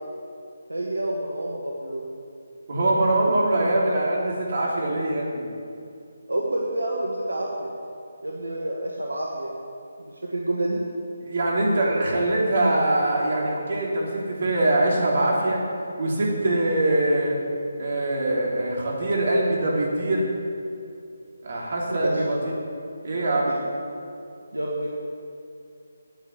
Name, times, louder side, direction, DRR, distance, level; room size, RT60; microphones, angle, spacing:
voice 1, 0.7-2.0 6.3-7.7 8.2-9.5 10.0-10.8 21.9-22.1 23.5-23.6 24.5-24.9, right 1 dB, 80° right, -2 dB, 1.6 m, -28 dB
voice 2, 2.7-5.5 11.2-15.6 16.0-17.4 17.8-20.3 21.4-22.5 23.0-23.5, right 1 dB, 50° right, -3 dB, 3.3 m, -23 dB
9.7 x 9.0 x 8.6 m, 2.5 s
figure-of-eight pair, 150°, 0 cm